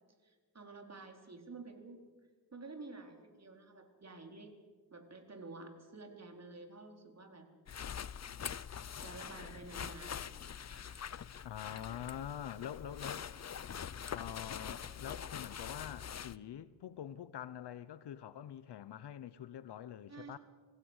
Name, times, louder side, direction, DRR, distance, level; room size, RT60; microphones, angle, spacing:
voice 1, 0.2-2.0 2.5-4.5 4.9-7.5 9.0-10.4 10.7-11.1 12.9-13.0 20.1-20.4, right 3 dB, 40° right, 4.1 m, -51 dB
sound 1, 7.7-16.4, left 8 dB, 40° left, 0.7 m, -44 dB
voice 2, 11.4-13.3 14.1-20.4, left 10 dB, 80° left, 1.0 m, -45 dB
26.0 x 16.5 x 8.2 m
cardioid pair, 80°, 40 cm